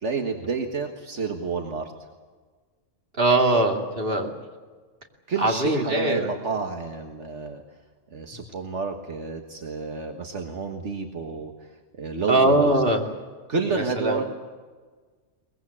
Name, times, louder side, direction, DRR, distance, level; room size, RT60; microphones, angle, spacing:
voice 1, 0.0-1.9 5.3-7.6 8.1-12.8 13.5-14.2, right 4 dB, 75° right, 4 dB, 1.9 m, -30 dB
voice 2, 3.2-4.3 5.4-6.3 12.3-13.0 13.7-14.2, right 2 dB, 50° right, 2 dB, 2.9 m, -21 dB
22.5 x 20.5 x 8.7 m, 1.4 s
omnidirectional pair, 1.2 m